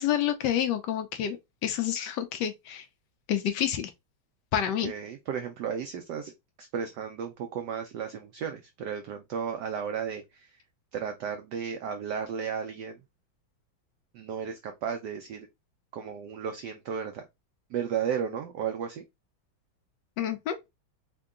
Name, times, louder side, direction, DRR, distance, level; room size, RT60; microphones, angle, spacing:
voice 1, 0.0-1.4 1.6-2.9 3.3-3.9 4.5-4.9 20.2-20.5, left 10 dB, 75° left, 1.0 m, -28 dB
voice 2, 4.8-6.3 6.6-10.6 10.9-13.0 14.1-15.5 15.9-17.2 17.7-19.0, right 7 dB, 90° right, 0.9 m, -34 dB
3.7 x 2.2 x 3.6 m
omnidirectional pair, 2.4 m